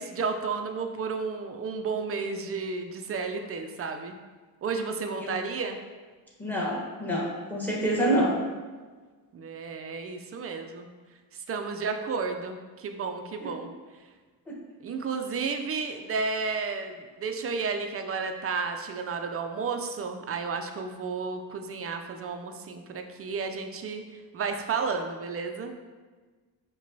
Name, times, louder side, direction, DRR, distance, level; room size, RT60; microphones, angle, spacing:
voice 1, 0.0-4.2 4.6-5.8 9.3-10.9 11.3-13.7 14.8-25.7, right 4 dB, 35° right, 5 dB, 0.4 m, -32 dB
voice 2, 6.4-8.3, right 1 dB, 5° left, -4 dB, 1.0 m, -27 dB
5.0 x 2.3 x 2.6 m, 1.4 s
cardioid pair, 65°, 46 cm